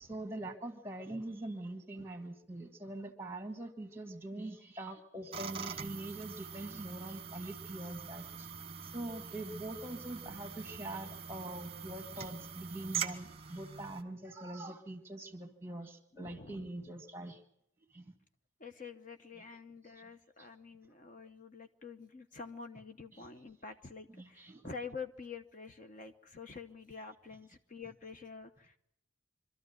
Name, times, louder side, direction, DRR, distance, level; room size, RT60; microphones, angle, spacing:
voice 1, 0.0-8.5 8.8-17.4 17.9-18.1 20.0-20.1 20.4-20.5 23.1-23.3 24.1-24.7, right 1 dB, 15° right, 6 dB, 1.9 m, -43 dB
sound 1, 5.3-14.0, right 7 dB, 30° right, 1.2 m, -43 dB
sound 2, 9.7-13.9, right 2 dB, 65° left, 4.0 m, -65 dB
voice 2, 16.1-16.9 18.6-28.8, left 5 dB, 40° left, 7 dB, 0.9 m, -48 dB
24.5 x 13.5 x 9.4 m, 0.74 s
head